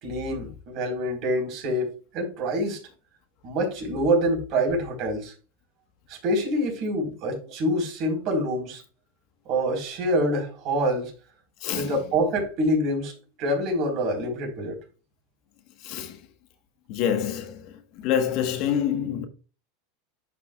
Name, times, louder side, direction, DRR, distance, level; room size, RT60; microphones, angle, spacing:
voice 1, 0.0-2.8 3.4-5.3 6.1-8.8 9.5-11.1 11.7-13.1 13.4-14.8, equal, 50° right, 4.3 m, -26 dB
voice 2, 15.8-16.2 16.9-17.7 18.0-19.3, left 9 dB, 55° left, 1.3 m, -26 dB
10.5 x 5.9 x 2.4 m
supercardioid pair, 125°, 0 cm